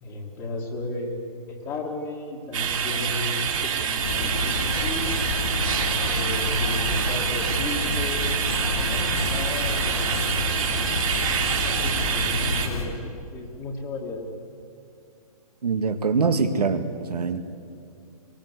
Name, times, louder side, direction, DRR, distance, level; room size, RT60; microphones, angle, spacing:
voice 1, 0.0-5.2 6.0-8.4 8.6-10.2 11.6-14.3, left 2 dB, 20° left, -2 dB, 2.0 m, -34 dB
sound 1, 2.5-12.7, right 7 dB, 55° right, 3.0 m, -26 dB
sound 2, 4.0-12.8, left 3 dB, 70° left, 6.0 m, -29 dB
voice 2, 15.6-17.4, right 5 dB, 90° right, 8 dB, 1.9 m, -24 dB
23.0 x 19.5 x 8.2 m, 2.4 s
hypercardioid pair, 160°, 20 cm